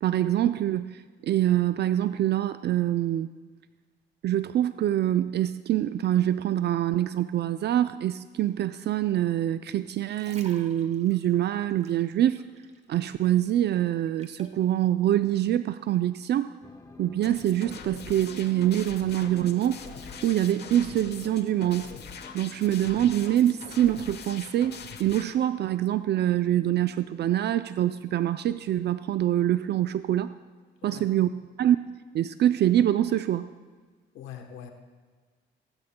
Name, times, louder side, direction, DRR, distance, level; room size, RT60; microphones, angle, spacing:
voice 1, 0.0-3.3 4.2-12.4 12.9-16.5 17.0-19.8 20.2-21.9 22.3-30.3 30.8-31.3 31.6-31.8 32.1-33.5, right 12 dB, 60° right, 12 dB, 0.4 m, -25 dB
sound 1, 9.9-12.9 13.2-14.6 15.2-15.4, right 4 dB, 35° right, 1.1 m, -50 dB
sound 2, 16.6-31.2 31.6-31.7, left 2 dB, 15° left, 0.8 m, -51 dB
sound 3, 17.2-25.2, left 6 dB, 55° left, 1.1 m, -43 dB
voice 2, 34.1-34.7, left 8 dB, 90° left, 5 dB, 1.1 m, -42 dB
18.5 x 13.0 x 2.2 m, 1.5 s
cardioid pair, 90°, 20 cm